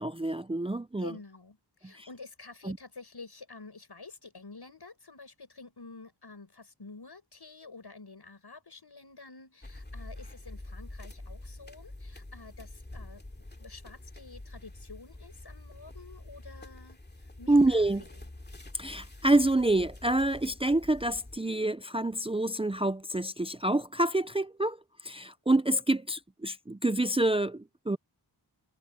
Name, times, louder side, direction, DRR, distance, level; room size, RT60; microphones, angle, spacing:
voice 1, 0.0-1.1 1.9-2.1 2.6-2.8 17.5-18.0 18.7-24.8 25.0-28.0, right 2 dB, 15° right, 0.5 m, -27 dB
voice 2, 1.0-13.2 13.6-17.0 17.4-18.3, left 3 dB, 65° left, 7.7 m, -49 dB
sound 1, 9.6-21.4, left 2 dB, 25° left, 2.6 m, -47 dB
wide cardioid pair, 70°, 42 cm